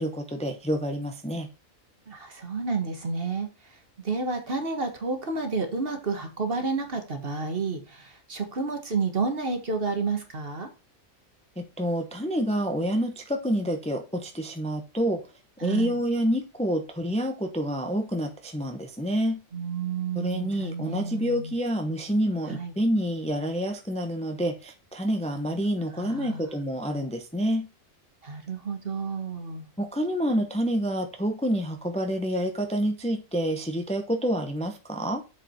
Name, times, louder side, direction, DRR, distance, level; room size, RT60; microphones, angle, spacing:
voice 1, 0.0-1.5 11.6-15.2 15.6-19.4 20.1-27.7 29.8-35.2, equal, 5° left, 5 dB, 0.8 m, -28 dB
voice 2, 2.1-3.5 4.0-10.7 15.6-15.9 19.5-21.5 22.5-22.7 26.0-26.4 28.2-29.7, right 4 dB, 45° right, 5 dB, 1.6 m, -30 dB
7.7 x 5.0 x 4.5 m, 0.30 s
omnidirectional pair, 1.4 m